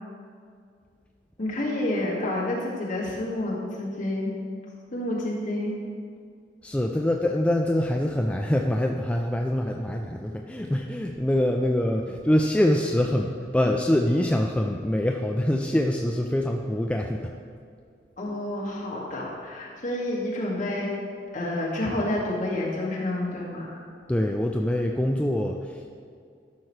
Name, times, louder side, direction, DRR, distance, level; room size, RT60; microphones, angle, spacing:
voice 1, 1.4-4.3 4.9-5.8 18.2-20.9 21.3-23.7, left 1 dB, 45° left, -5 dB, 2.0 m, -29 dB
voice 2, 6.6-17.3 24.1-25.9, left 1 dB, 5° left, 1 dB, 0.3 m, -24 dB
12.5 x 5.9 x 3.2 m, 2.3 s
head